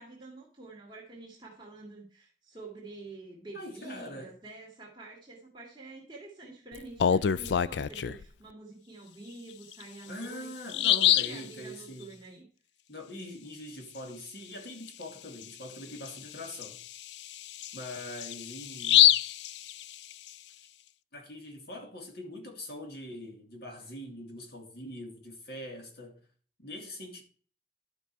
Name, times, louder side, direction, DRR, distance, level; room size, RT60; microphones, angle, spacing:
voice 1, 0.0-12.5, right 3 dB, 25° right, 2.1 m, -47 dB
voice 2, 3.5-4.3 10.1-12.1 12.9-16.8 17.7-19.1 21.1-26.2 26.6-27.2, left 1 dB, 65° left, 2.2 m, -43 dB
Bird vocalization bird call bird song, 6.8-8.2 9.7-9.8 10.2-10.3 10.7-11.4 14.9-15.0 15.4-15.5 16.1-20.3, left 11 dB, 85° left, 0.4 m, -26 dB
12.0 x 5.4 x 4.7 m
head